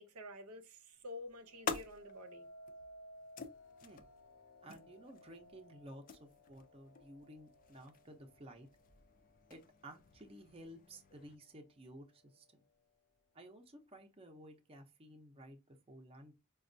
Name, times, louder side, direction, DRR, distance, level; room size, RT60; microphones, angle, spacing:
voice 1, 0.0-2.5, left 1 dB, 75° right, 0.7 m, -50 dB
sound 1, 0.9-11.4, left 5 dB, 40° left, 0.4 m, -49 dB
sound 2, 1.3-10.5 11.0-11.5, equal, 85° left, 0.6 m, -59 dB
voice 2, 4.6-8.7 9.5-12.6 13.3-16.3, right 1 dB, 25° right, 0.5 m, -55 dB
5.1 x 2.2 x 2.5 m
head